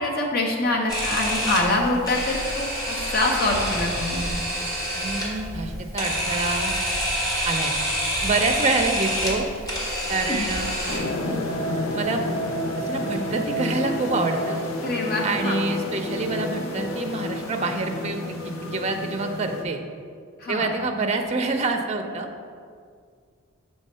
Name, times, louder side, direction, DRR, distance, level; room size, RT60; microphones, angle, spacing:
voice 1, 0.0-4.3 10.2-10.5 14.8-15.6 20.4-20.7, left 2 dB, 45° left, 0 dB, 0.9 m, -25 dB
Camera, 0.9-11.0, equal, 20° left, 1.3 m, -27 dB
voice 2, 4.9-6.8 7.4-7.7 8.2-9.5 10.1-11.0 11.9-12.3 12.9-14.6 15.2-19.8 20.5-22.3, right 3 dB, 30° right, 4 dB, 0.4 m, -27 dB
sound 1, 10.9-19.6, left 1 dB, 80° left, 0.8 m, -29 dB
6.3 x 3.4 x 5.4 m, 2.1 s
head